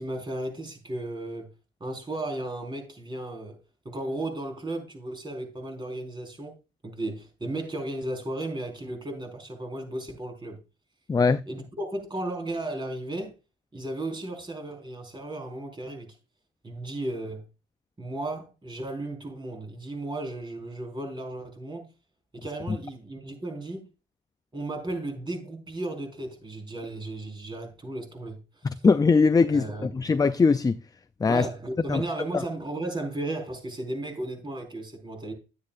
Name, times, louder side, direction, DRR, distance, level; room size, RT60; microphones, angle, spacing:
voice 1, 0.0-1.5 1.8-3.6 3.8-6.5 6.8-10.6 11.5-13.3 13.7-16.1 16.6-17.4 18.0-21.9 22.3-23.8 24.5-28.8 29.5-29.9 31.3-35.3, right 2 dB, 25° right, 4.5 m, -35 dB
voice 2, 11.1-11.4 28.6-30.8 31.2-31.5 31.9-32.0, left 4 dB, 20° left, 0.4 m, -21 dB
11.5 x 9.6 x 2.5 m
cardioid pair, 90°, 20 cm